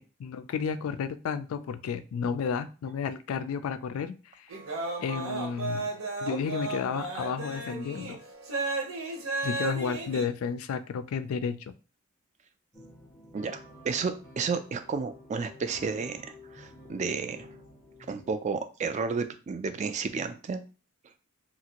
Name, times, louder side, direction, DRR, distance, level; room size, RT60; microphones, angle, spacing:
voice 1, 0.0-4.5 5.0-5.9 6.2-8.2 9.4-11.7, left 6 dB, 80° left, 12 dB, 0.3 m, -32 dB
sound 1, 4.5-10.3, right 3 dB, 75° right, 0.8 m, -34 dB
sound 2, 12.7-18.3, left 2 dB, 15° left, 0.7 m, -50 dB
voice 2, 13.8-16.2 16.5-17.5 18.1-20.6, right 5 dB, 35° right, 10 dB, 0.3 m, -31 dB
3.0 x 2.5 x 2.8 m, 0.34 s
head